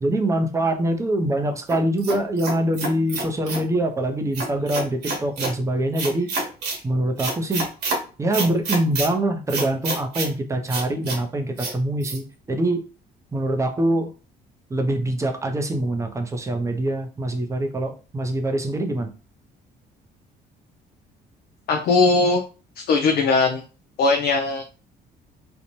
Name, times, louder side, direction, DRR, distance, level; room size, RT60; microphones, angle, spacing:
voice 1, 0.0-6.3 6.8-7.7 8.2-12.8 13.3-14.1 14.7-19.1, right 1 dB, 20° right, 5 dB, 0.5 m, -24 dB
sound 1, 1.7-3.7 4.3-5.5 6.0-6.8 7.2-8.0 8.3-9.1 9.5-10.3 10.7-11.2 11.6-11.7 12.0-12.2, right 3 dB, 75° right, 1.0 m, -28 dB
voice 2, 21.7-22.4 22.8-23.6 24.0-24.6, left 3 dB, 65° left, 3 dB, 0.4 m, -19 dB
2.7 x 2.1 x 2.8 m, 0.34 s
cardioid pair, 110°, 17 cm